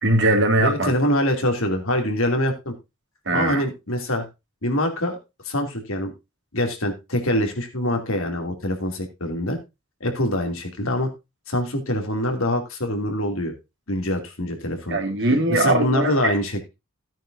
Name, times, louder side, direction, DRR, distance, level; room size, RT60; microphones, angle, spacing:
voice 1, 0.0-0.9 3.3-3.6 14.9-16.3, right 2 dB, 55° right, 4 dB, 2.8 m, -20 dB
voice 2, 0.6-2.7 3.3-4.3 4.6-5.2 5.4-6.1 6.5-9.6 10.0-11.1 11.5-13.5 13.9-15.0 15.5-16.7, left 1 dB, 75° left, 5 dB, 2.7 m, -24 dB
14.5 x 9.1 x 2.6 m, 0.24 s
head